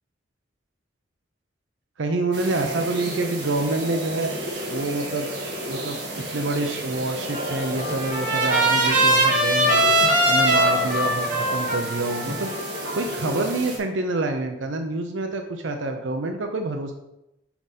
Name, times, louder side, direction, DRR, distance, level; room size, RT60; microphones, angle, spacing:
voice 1, 2.0-4.3 4.7-5.3 5.7-6.0 6.3-9.8 10.3-12.5 12.9-16.9, right 2 dB, 80° right, 5 dB, 0.6 m, -27 dB
sound 1, 2.3-13.8, right 1 dB, 60° right, 1.5 m, -32 dB
Trumpet, 7.3-13.5, right 1 dB, 40° right, 1.5 m, -22 dB
5.8 x 5.1 x 4.2 m, 0.88 s
head